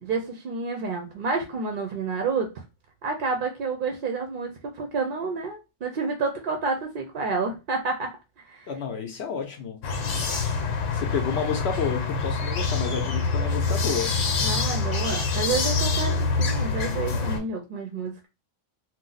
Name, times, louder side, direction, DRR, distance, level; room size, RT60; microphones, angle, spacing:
voice 1, 0.0-2.5 3.0-8.1 8.5-8.7 14.4-16.1 16.4-18.3, right 4 dB, 60° right, 0.6 m, -29 dB
voice 2, 8.7-9.8 10.9-14.1, left 6 dB, 65° left, 0.8 m, -30 dB
sound 1, 9.8-17.4, left 4 dB, 80° left, 1.0 m, -26 dB
2.6 x 2.0 x 3.8 m
omnidirectional pair, 1.3 m